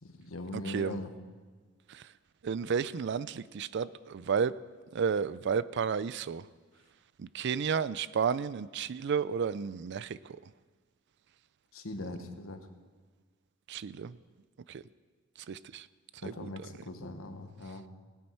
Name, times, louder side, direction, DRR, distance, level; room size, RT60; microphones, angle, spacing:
voice 1, 0.0-1.1 11.7-12.6 16.2-17.8, left 2 dB, 75° left, 7 dB, 1.2 m, -41 dB
voice 2, 0.5-1.0 1.9-2.0 2.4-4.6 4.9-6.4 7.2-10.4 13.7-14.2 14.7-14.8 15.5-15.9 16.2-16.5, right 6 dB, 55° right, 18 dB, 0.4 m, -32 dB
18.5 x 10.5 x 4.5 m, 1.4 s
head